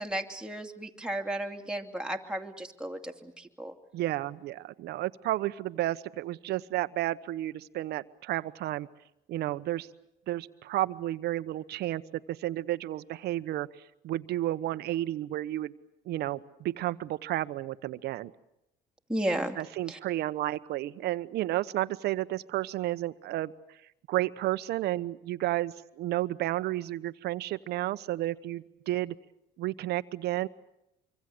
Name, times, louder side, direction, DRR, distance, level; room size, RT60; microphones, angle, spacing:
voice 1, 0.0-3.7 19.1-19.6 19.9-20.0, right 1 dB, 5° right, 3 dB, 2.5 m, -34 dB
voice 2, 3.9-8.9 9.3-9.9 10.3-13.7 14.0-15.7 16.1-18.3 19.6-23.5 24.1-29.1 29.6-30.5, right 15 dB, 75° right, 13 dB, 1.0 m, -32 dB
25.5 x 24.5 x 7.9 m, 0.84 s
cardioid pair, 110°, 17 cm